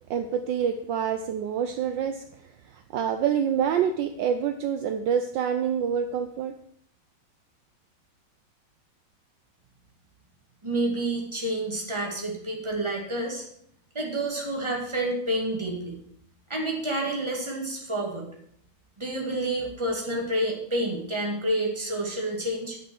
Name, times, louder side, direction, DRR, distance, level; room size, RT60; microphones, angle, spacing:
voice 1, 0.1-2.2 2.7-6.5, right 8 dB, 70° right, 8 dB, 1.3 m, -26 dB
voice 2, 10.6-13.5 13.9-16.0 16.5-18.3 19.0-22.8, right 1 dB, 15° right, -1 dB, 2.2 m, -29 dB
9.5 x 5.6 x 7.8 m, 0.68 s
omnidirectional pair, 2.2 m